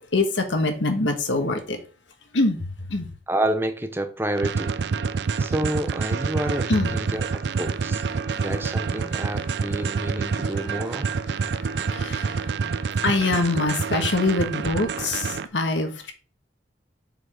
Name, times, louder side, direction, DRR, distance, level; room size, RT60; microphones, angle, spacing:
voice 1, 0.0-1.8 2.3-3.1 6.7-7.0 8.2-8.5 9.3-9.4 10.3-10.7 11.3-16.1, left 2 dB, 90° left, 1.4 m, -25 dB
voice 2, 3.3-4.7 5.4-8.0 8.4-11.2, right 1 dB, 10° right, 0.7 m, -29 dB
sound 1, 4.4-15.5, right 5 dB, 70° right, 0.4 m, -27 dB
7.2 x 4.0 x 4.9 m
head